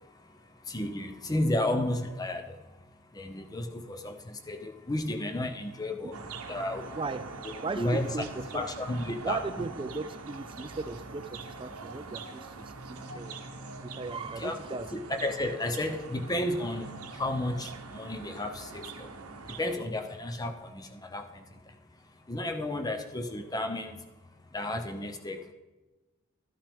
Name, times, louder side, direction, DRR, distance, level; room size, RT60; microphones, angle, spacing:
voice 1, 0.7-2.4 3.2-6.2 6.5-6.9 7.4-8.2 8.5-9.7 14.4-14.6 14.9-19.1 19.6-21.2 22.3-24.0 24.5-25.4, left 1 dB, 15° left, 0.6 m, -32 dB
sound 1, 6.1-19.8, right 3 dB, 85° right, 0.8 m, -44 dB
voice 2, 6.9-8.7 9.2-13.4 13.8-14.9, right 3 dB, 25° right, 0.3 m, -37 dB
13.0 x 8.7 x 3.5 m
head